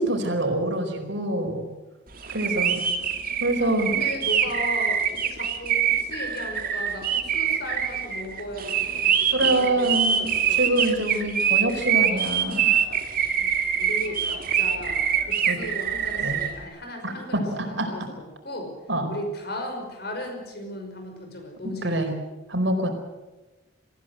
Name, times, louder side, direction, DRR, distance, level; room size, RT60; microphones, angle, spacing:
voice 1, 0.0-1.7 2.3-2.8 3.4-3.9 9.3-12.7 15.5-15.7 16.1-16.4 17.0-17.9 18.9-19.1 21.8-22.1 22.5-22.9, right 1 dB, 70° right, 4 dB, 4.5 m, -25 dB
voice 2, 2.2-2.9 3.6-10.6 13.4-13.5 13.8-18.7 19.1-22.0, left 1 dB, 55° left, 4 dB, 5.6 m, -36 dB
sound 1, 2.2-16.5, right 8 dB, 45° right, 2.3 m, -24 dB
23.5 x 15.5 x 8.1 m, 1.1 s
head